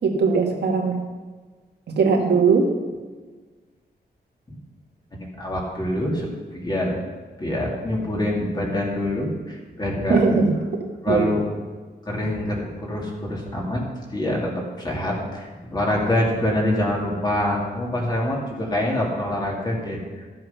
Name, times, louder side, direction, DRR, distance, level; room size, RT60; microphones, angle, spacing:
voice 1, 0.0-1.0 1.9-2.7 10.1-11.3, right 4 dB, 85° right, 1 dB, 1.8 m, -20 dB
voice 2, 5.1-6.9 7.4-10.2 11.0-11.5 12.1-13.8 14.1-14.5 14.8-20.3, left 1 dB, 25° left, -2 dB, 2.6 m, -25 dB
13.5 x 7.8 x 5.7 m, 1.4 s
wide cardioid pair, 155°, 17 cm